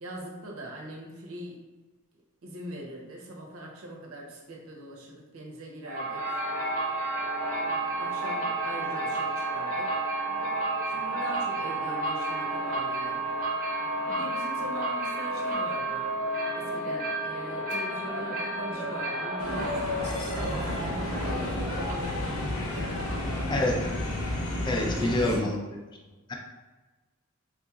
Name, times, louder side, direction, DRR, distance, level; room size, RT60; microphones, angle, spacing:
voice 1, 0.0-1.6 2.1-6.4 8.0-10.0 10.9-13.2 13.9-16.1 16.5-22.4 22.7-23.7 24.7-25.5, right 1 dB, 75° right, -1 dB, 0.8 m, -41 dB
sound 1, 5.8-22.3, right 2 dB, 40° right, 0.8 m, -31 dB
sound 2, 19.4-25.4, left 1 dB, 75° left, 0.6 m, -31 dB
voice 2, 24.6-25.6 26.3-26.4, left 1 dB, 20° left, 1 dB, 0.4 m, -26 dB
3.8 x 2.9 x 2.4 m, 1.2 s
head